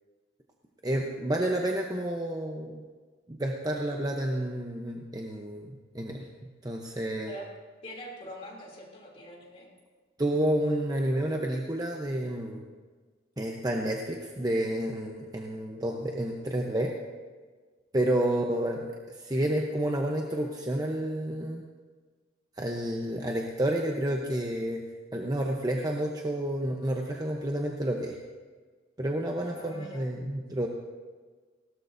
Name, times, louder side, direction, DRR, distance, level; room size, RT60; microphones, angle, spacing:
voice 1, 0.8-2.8 3.3-7.3 10.2-12.6 13.4-16.9 17.9-21.6 22.6-24.8 25.1-28.2 29.0-30.7, right 1 dB, 20° right, 1 dB, 0.8 m, -30 dB
voice 2, 7.8-9.7 18.3-18.4 29.4-30.1, equal, 30° left, -1 dB, 2.9 m, -44 dB
19.0 x 17.5 x 2.7 m, 1.5 s
head